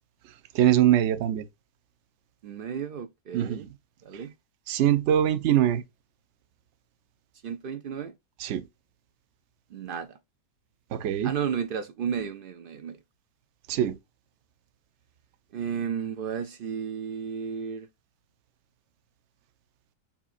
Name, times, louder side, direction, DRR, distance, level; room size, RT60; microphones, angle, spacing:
voice 1, 0.5-1.4 3.3-3.6 4.7-5.8 8.4-8.6 10.9-11.3 13.7-13.9, right 11 dB, 60° right, 0.8 m, -22 dB
voice 2, 2.4-3.7 4.0-4.3 7.4-8.1 9.7-10.2 11.2-13.0 15.5-17.9, right 7 dB, 90° right, 0.4 m, -33 dB
7.0 x 2.8 x 2.5 m
omnidirectional pair, 1.6 m